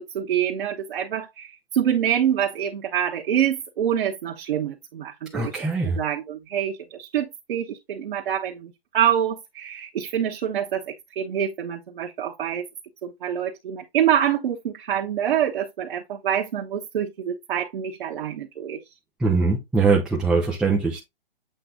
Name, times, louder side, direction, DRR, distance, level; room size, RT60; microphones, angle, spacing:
voice 1, 0.0-5.5 5.9-12.7 13.0-18.8, right 9 dB, 55° right, 1.2 m, -26 dB
voice 2, 5.3-6.0 19.2-21.0, right 4 dB, ahead, 0.4 m, -22 dB
7.9 x 3.2 x 3.7 m
hypercardioid pair, 140°, 30 cm